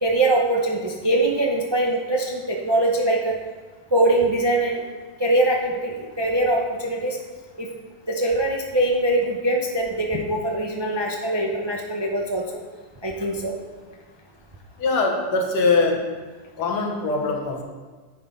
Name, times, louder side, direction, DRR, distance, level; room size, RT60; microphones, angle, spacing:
voice 1, 0.0-3.3 3.9-4.8 5.2-7.2 7.6-7.7 8.1-12.6 13.0-13.6, right 1 dB, 35° right, -1 dB, 0.4 m, -22 dB
voice 2, 14.8-16.1 16.6-17.6, left 3 dB, 85° left, 1 dB, 1.8 m, -22 dB
10.0 x 6.0 x 3.9 m, 1.4 s
omnidirectional pair, 1.7 m